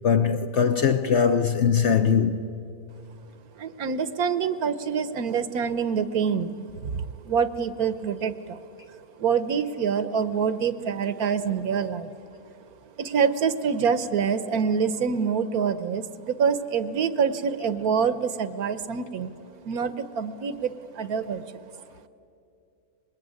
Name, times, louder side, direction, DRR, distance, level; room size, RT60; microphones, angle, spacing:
voice 1, 0.0-2.5, left 7 dB, 55° left, 0.8 m, -21 dB
voice 2, 3.6-6.5 6.8-8.6 9.2-12.1 13.0-19.4 19.6-21.6, right 6 dB, 65° right, 1.2 m, -26 dB
25.0 x 21.0 x 9.5 m
omnidirectional pair, 1.8 m